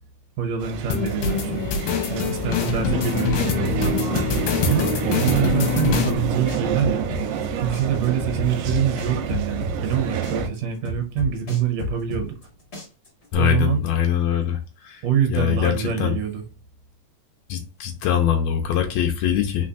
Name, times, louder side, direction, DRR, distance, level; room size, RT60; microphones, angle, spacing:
voice 1, 0.4-1.7 2.1-3.9 4.7-7.1 7.6-12.4 13.4-13.8 15.0-16.5, right 8 dB, 70° right, 1.7 m, -25 dB
sound 1, 0.6-10.5, right 6 dB, 90° right, 2.3 m, -28 dB
sound 2, 0.9-6.1, left 6 dB, 70° left, 1.7 m, -24 dB
sound 3, 3.3-5.0 5.2-7.5 7.7-10.0 10.2-12.5 12.7-13.3, left 2 dB, 45° left, 0.8 m, -31 dB
voice 2, 13.3-14.6 14.8-15.0 15.3-16.1 17.5-19.7, left 9 dB, 90° left, 1.5 m, -22 dB
4.2 x 4.0 x 2.4 m
omnidirectional pair, 3.8 m